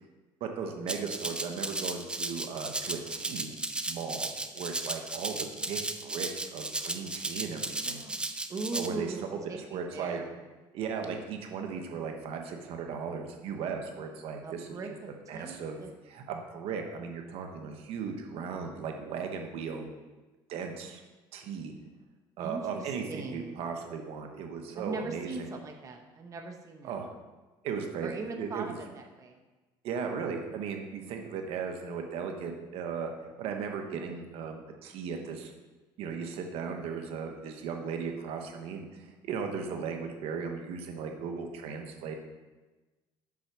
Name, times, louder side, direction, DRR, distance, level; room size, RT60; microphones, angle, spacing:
voice 1, 0.4-3.6 3.9-8.0 8.7-10.2 10.7-14.8 15.3-19.9 20.5-21.0 21.3-21.7 22.4-25.5 26.8-27.1 27.6-28.1 28.4-28.7 29.8-35.5 36.0-42.2, right 6 dB, 65° right, 4 dB, 1.1 m, -37 dB
Rattle (instrument), 0.9-8.9, right 2 dB, 10° right, 0.5 m, -35 dB
voice 2, 7.8-10.4 14.4-15.9 22.4-23.6 24.8-26.9 28.0-29.4, right 3 dB, 30° right, 2 dB, 1.0 m, -40 dB
6.1 x 5.7 x 6.2 m, 1.2 s
cardioid pair, 105°, 10 cm